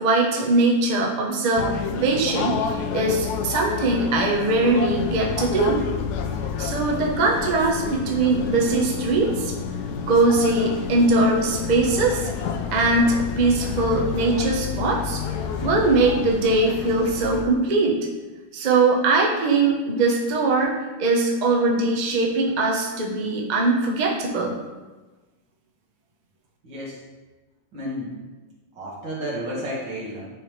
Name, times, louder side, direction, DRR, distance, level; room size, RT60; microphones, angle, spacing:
voice 1, 0.0-5.9 6.6-9.5 10.1-12.3 12.7-15.2 15.6-18.0 18.5-20.7 21.0-24.6, right 3 dB, 45° right, -1 dB, 0.5 m, -21 dB
sound 1, 1.6-17.5, left 6 dB, 70° left, 1.0 m, -29 dB
voice 2, 26.6-27.0 27.7-28.2 28.7-30.3, equal, 75° right, -6 dB, 2.4 m, -31 dB
9.1 x 3.4 x 3.1 m, 1.2 s
omnidirectional pair, 2.0 m